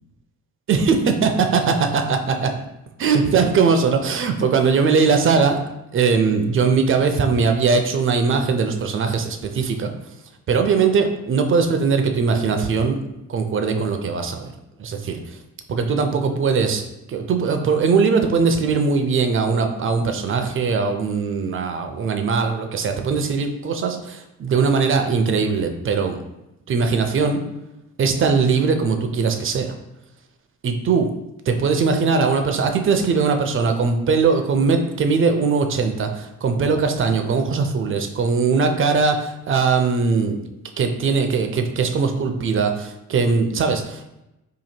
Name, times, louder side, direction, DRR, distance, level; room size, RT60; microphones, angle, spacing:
voice 1, 0.7-2.5 3.0-9.9 10.5-13.0 13.3-14.5 14.8-15.4 15.7-26.2 26.7-27.4 28.0-29.7 30.6-31.1 31.5-40.4 40.8-44.2, right 5 dB, 45° right, 6 dB, 0.5 m, -20 dB
2.9 x 2.6 x 4.2 m, 0.92 s
cardioid pair, 90°, 30 cm